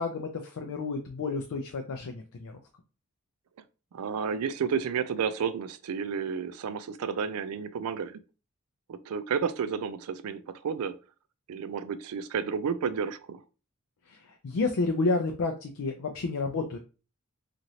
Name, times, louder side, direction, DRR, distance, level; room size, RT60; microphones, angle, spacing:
voice 1, 0.0-2.6 14.1-16.8, left 3 dB, 75° left, 0.4 m, -30 dB
voice 2, 3.9-8.2 8.9-10.9 11.5-13.4, right 6 dB, 80° right, 0.4 m, -31 dB
3.0 x 2.5 x 2.7 m
head